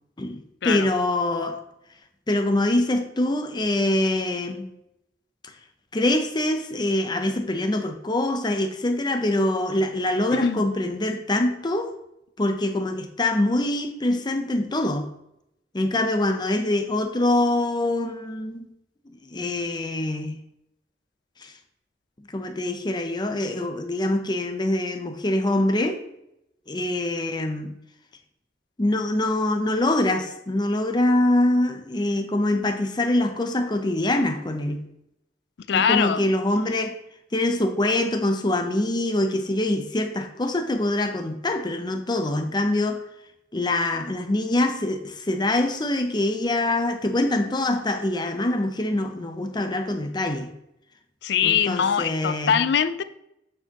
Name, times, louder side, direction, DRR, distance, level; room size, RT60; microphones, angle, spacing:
voice 1, 0.2-1.6 2.3-4.7 5.9-11.9 12.4-15.1 15.7-18.7 19.1-20.4 21.4-21.5 22.3-26.0 26.7-27.8 28.8-34.9 35.7-37.0 37.3-43.0 43.5-50.5 51.4-52.6, left 1 dB, 25° left, 0.7 m, -24 dB
voice 2, 10.3-10.6 35.7-36.2 51.2-53.0, left 7 dB, 65° left, 0.4 m, -22 dB
8.4 x 4.5 x 2.9 m
head